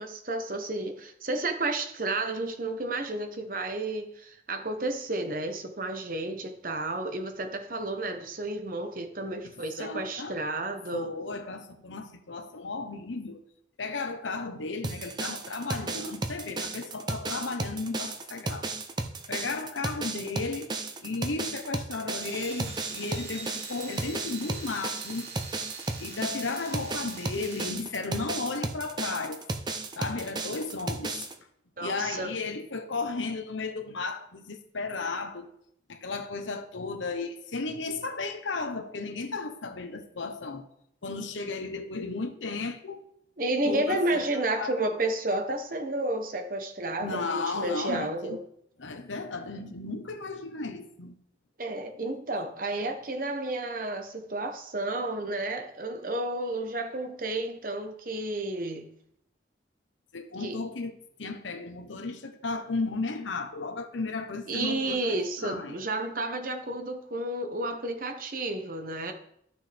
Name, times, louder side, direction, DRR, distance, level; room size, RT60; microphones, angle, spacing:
voice 1, 0.0-11.1 31.8-32.3 43.4-48.4 51.6-58.9 60.4-60.6 64.5-69.1, right 2 dB, 45° right, 1.0 m, -31 dB
voice 2, 9.4-10.5 10.9-13.4 13.8-18.7 19.3-20.7 21.0-25.3 26.0-29.4 30.0-31.3 31.8-35.5 35.9-40.6 41.0-43.0 43.6-44.8 47.0-48.4 48.8-51.2 60.1-60.9 61.2-65.7, left 3 dB, 85° left, 1.0 m, -34 dB
sound 1, 14.8-31.3, right 3 dB, 25° right, 0.6 m, -34 dB
sound 2, 22.2-27.7, right 4 dB, 65° right, 2.3 m, -43 dB
13.5 x 6.2 x 3.5 m
head